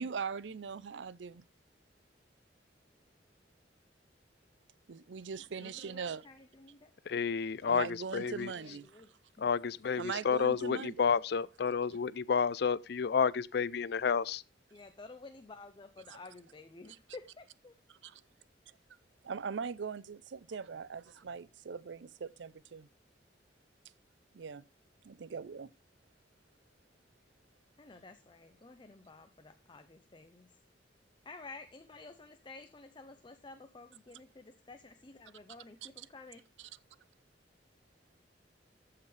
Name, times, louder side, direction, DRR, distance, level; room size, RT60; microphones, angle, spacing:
voice 1, 0.0-1.4 4.9-6.2 7.7-9.0 10.0-10.9 16.1-16.2 17.9-18.2 19.2-22.9 24.3-24.6 25.0-25.7 36.0-36.1 36.6-36.7, right 5 dB, 90° right, 0.5 m, -41 dB
voice 2, 5.6-6.9 8.5-9.1 9.4-9.5 14.7-17.7 27.8-30.6 31.2-36.4, left 3 dB, 25° left, 0.7 m, -52 dB
voice 3, 7.1-8.5 9.4-14.4, left 6 dB, 65° left, 0.5 m, -30 dB
14.5 x 5.8 x 3.3 m
head